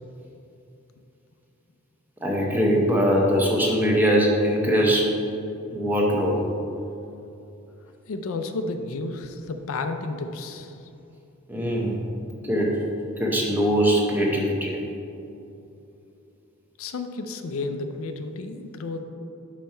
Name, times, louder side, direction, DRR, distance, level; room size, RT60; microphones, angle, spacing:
voice 1, 2.2-5.1 5.7-6.4 11.5-12.0 12.4-12.8 13.2-14.8, equal, 10° right, -2 dB, 0.8 m, -21 dB
voice 2, 8.1-10.9 16.8-19.0, left 3 dB, 70° left, 7 dB, 0.4 m, -32 dB
5.6 x 5.3 x 4.4 m, 2.8 s
head